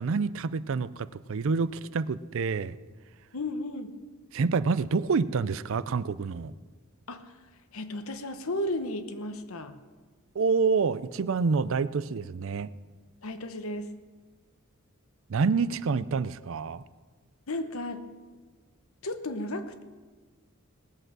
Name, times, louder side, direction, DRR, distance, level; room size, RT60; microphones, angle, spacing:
voice 1, 0.0-2.8 4.3-6.5 10.3-12.7 15.3-16.8, right 4 dB, 60° right, 16 dB, 0.5 m, -27 dB
voice 2, 3.3-3.9 7.1-7.4 7.7-9.8 13.2-13.9 17.5-18.0 19.0-19.8, left 1 dB, 70° left, 9 dB, 1.0 m, -34 dB
19.0 x 7.9 x 6.1 m, 1.4 s
head